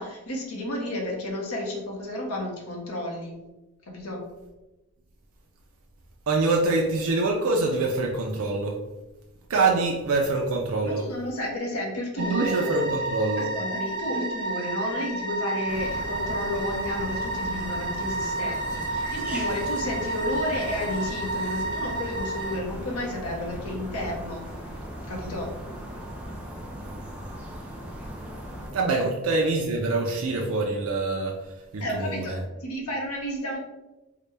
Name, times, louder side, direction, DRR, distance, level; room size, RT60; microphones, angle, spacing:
voice 1, 0.0-3.4 3.9-4.2 10.8-12.7 13.4-24.4 25.1-25.5 31.8-33.6, left 1 dB, 85° left, 0 dB, 0.9 m, -32 dB
voice 2, 6.3-8.8 9.5-11.0 12.2-13.5 28.7-31.4 31.7-32.4, right 3 dB, 75° right, 0 dB, 0.5 m, -25 dB
sound 1, 12.2-22.6, right 2 dB, 45° right, 1.0 m, -31 dB
sound 2, 15.7-28.7, equal, 5° right, 0.4 m, -38 dB
3.9 x 2.2 x 3.2 m, 1.0 s
head